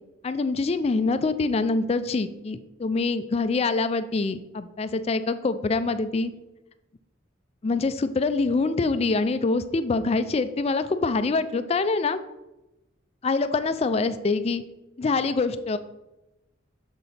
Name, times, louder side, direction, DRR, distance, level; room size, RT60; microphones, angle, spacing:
voice 1, 0.2-6.3 7.6-12.2 13.2-14.6 15.0-15.8, left 3 dB, 30° left, 12 dB, 0.3 m, -25 dB
7.5 x 3.9 x 4.2 m, 0.96 s
head